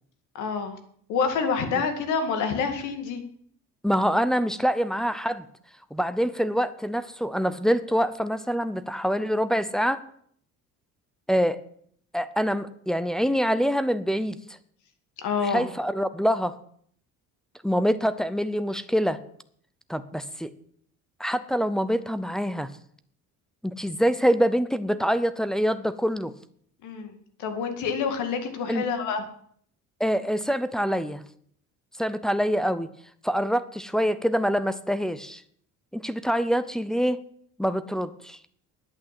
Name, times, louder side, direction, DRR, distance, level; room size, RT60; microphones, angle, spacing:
voice 1, 0.3-0.8 1.1-3.2 15.2-15.7 26.8-27.1 27.4-29.2, left 5 dB, 65° left, 7 dB, 2.2 m, -27 dB
voice 2, 3.8-5.4 5.9-10.0 11.3-11.6 12.1-14.4 15.5-16.5 17.6-19.2 19.9-20.5 21.2-22.7 23.6-26.3 28.7-28.8 30.0-31.2 32.0-32.9 33.2-35.4 35.9-37.2 37.6-38.4, equal, ahead, 10 dB, 0.4 m, -25 dB
11.0 x 8.8 x 7.5 m, 0.62 s
cardioid pair, 165°, 32 cm